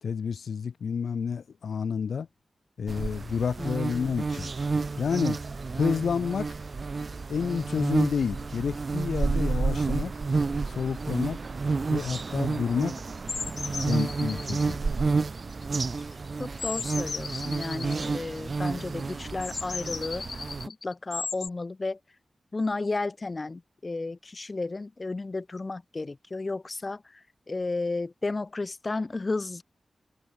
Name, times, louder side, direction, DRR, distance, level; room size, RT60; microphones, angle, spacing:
voice 1, 0.0-2.3 2.8-4.5 5.0-5.4 5.7-6.5 7.3-10.1 10.7-11.4 11.9-13.0 13.8-14.8, left 6 dB, 90° left, 1.9 m, -29 dB
sound 1, 2.9-20.7, right 4 dB, 55° right, 1.3 m, -30 dB
voice 2, 3.6-4.1 16.4-20.2 20.7-22.0 22.5-29.6, left 3 dB, 40° left, 1.3 m, -33 dB
sound 2, 13.3-14.7 15.5-16.1 16.5-18.1 19.4-21.5, left 4 dB, 65° left, 1.5 m, -36 dB
cardioid pair, 60°, 0 cm